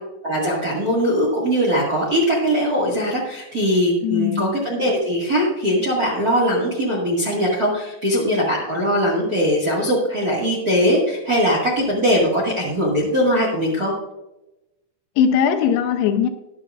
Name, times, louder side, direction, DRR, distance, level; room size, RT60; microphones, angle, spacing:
voice 1, 0.2-13.9, equal, 40° right, 1.3 m, -20 dB
voice 2, 4.0-4.6 15.2-16.3, left 7 dB, 80° left, 2.7 m, -19 dB
21.0 x 7.3 x 2.5 m
omnidirectional pair, 5.0 m